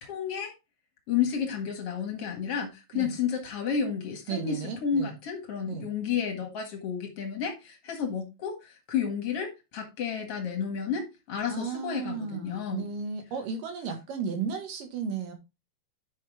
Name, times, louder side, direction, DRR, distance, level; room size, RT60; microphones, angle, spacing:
voice 1, 0.1-0.5 1.1-12.9, left 7 dB, 50° left, 1.9 m, -31 dB
voice 2, 4.3-5.2 5.7-5.9 11.5-15.3, right 6 dB, 55° right, 3.0 m, -34 dB
9.4 x 5.9 x 3.6 m
omnidirectional pair, 5.1 m